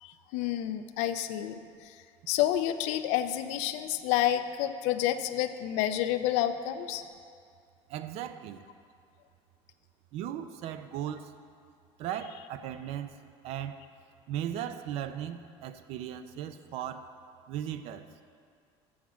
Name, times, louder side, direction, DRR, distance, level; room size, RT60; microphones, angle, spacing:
voice 1, 0.0-1.9 2.3-7.0, left 12 dB, 75° left, 10 dB, 0.5 m, -29 dB
voice 2, 7.9-8.6 10.1-11.2 12.0-13.1 13.4-13.8 14.3-17.1 17.5-18.0, right 10 dB, 60° right, 10 dB, 0.5 m, -37 dB
7.2 x 5.9 x 7.2 m, 2.3 s
cardioid pair, 145°, 12 cm